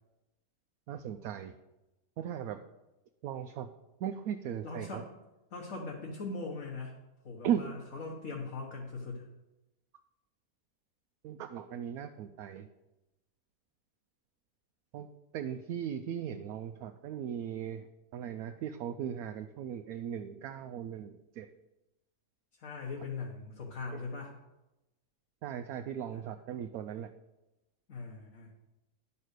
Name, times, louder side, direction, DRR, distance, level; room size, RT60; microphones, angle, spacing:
voice 1, 0.9-1.6 2.2-2.6 3.2-3.7 4.0-5.0 7.4-7.7 11.2-12.7 14.9-15.1 15.3-17.9 18.1-21.5 23.9-24.2 25.4-27.1, right 9 dB, 75° right, 7 dB, 1.0 m, -37 dB
voice 2, 4.6-5.1 5.5-6.9 7.2-9.3 22.6-24.3 26.1-26.2 27.9-28.5, left 3 dB, 60° left, -2 dB, 1.6 m, -40 dB
11.0 x 5.5 x 6.5 m, 0.98 s
omnidirectional pair, 1.6 m